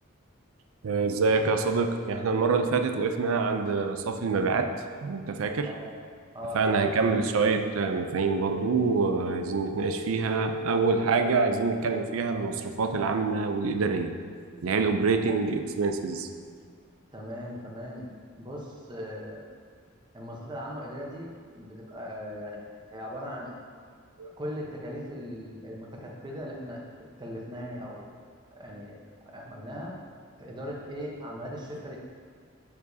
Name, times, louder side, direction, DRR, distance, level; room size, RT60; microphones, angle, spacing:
voice 1, 0.8-4.7 5.0-5.7 6.5-14.1 14.6-16.3 24.2-24.3, right 4 dB, 90° right, 6 dB, 0.5 m, -26 dB
voice 2, 6.3-6.8 15.2-15.3 17.1-18.1 18.4-19.4 20.1-21.3 21.5-23.5 24.4-26.8 27.2-28.1 28.5-29.0 29.2-29.9 30.4-32.0, equal, 20° right, -2 dB, 0.9 m, -39 dB
11.0 x 4.8 x 2.7 m, 2.1 s
head